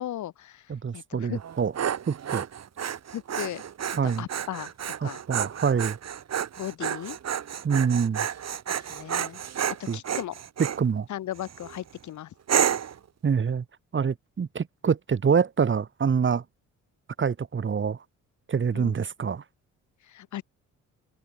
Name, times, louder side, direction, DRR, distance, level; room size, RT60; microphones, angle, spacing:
voice 1, 0.0-0.7 0.9-1.4 3.1-3.6 4.0-4.7 5.0-5.2 6.6-7.2 8.7-9.4 9.9-10.3 11.1-12.3 18.7-19.0 20.1-20.4, left 12 dB, 75° left, 2.6 m, -36 dB
voice 2, 0.7-1.7 2.1-2.5 4.0-4.3 5.0-6.0 7.6-8.3 9.9-10.0 10.8-11.1 13.2-13.6 13.9-16.4 17.2-18.0 18.5-19.4, right 6 dB, 40° right, 3.2 m, -25 dB
Dog, 1.4-10.8 11.4-11.8 12.5-13.0, right 9 dB, 60° right, 7.4 m, -30 dB
cardioid pair, 90°, 30 cm